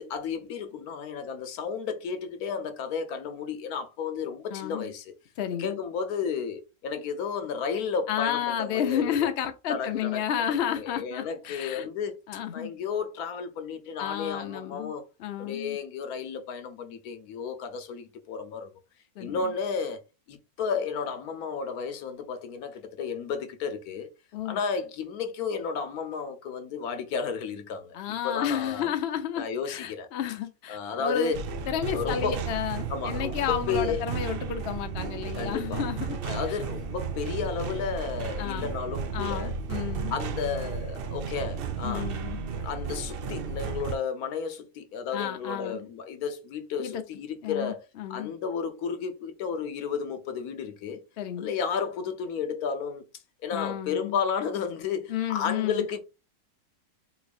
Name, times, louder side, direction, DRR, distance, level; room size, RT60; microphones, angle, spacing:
voice 1, 0.0-5.1 5.6-9.3 9.7-10.2 10.5-12.2 12.5-15.0 15.4-18.7 19.2-20.0 20.3-24.1 24.4-28.0 28.2-28.9 29.4-30.1 30.7-31.4 31.9-32.4 32.9-34.0 35.4-35.8 36.2-39.6 40.1-42.1 42.6-47.8 48.1-51.0 51.4-53.0 53.4-56.0, left 6 dB, 80° left, 1.2 m, -32 dB
voice 2, 4.5-4.9 5.4-5.8 8.1-11.9 12.3-12.7 14.0-14.9 15.2-15.8 19.2-19.4 24.3-24.6 27.9-31.3 31.7-36.2 36.5-36.6 38.4-38.7 39.1-40.2 41.8-42.4 45.1-45.9 46.8-46.9 47.4-48.3 51.2-51.5 53.5-54.2 55.1-55.8, left 9 dB, 60° left, 0.7 m, -31 dB
sound 1, 31.3-44.0, right 5 dB, 90° right, 0.5 m, -33 dB
4.0 x 3.0 x 2.4 m
omnidirectional pair, 1.6 m